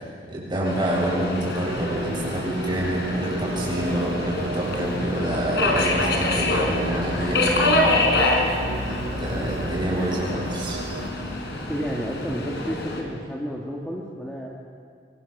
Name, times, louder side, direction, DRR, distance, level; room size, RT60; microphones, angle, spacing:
voice 1, 0.3-8.4 8.9-10.8, right 1 dB, 25° right, -3 dB, 7.1 m, -27 dB
Subway metro underground, 0.6-13.0, left 2 dB, 65° left, 4.4 m, -26 dB
sound 1, 1.6-11.1, right 1 dB, 65° right, 2.8 m, -33 dB
voice 2, 11.7-14.5, equal, 5° left, -3 dB, 1.9 m, -31 dB
25.5 x 24.5 x 6.7 m, 2.2 s
head